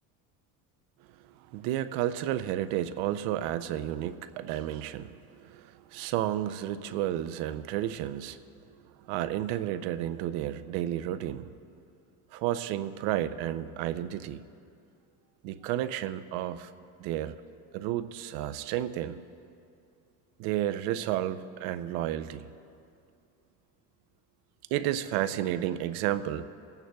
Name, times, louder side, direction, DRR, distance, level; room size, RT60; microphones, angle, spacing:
voice 1, 1.5-8.4 9.1-11.5 12.3-14.4 15.4-16.7 17.0-17.4 17.7-19.2 20.4-22.4 24.7-26.4, right 12 dB, 80° right, 12 dB, 0.6 m, -31 dB
27.0 x 9.0 x 2.3 m, 2.5 s
cardioid pair, 160°, 38 cm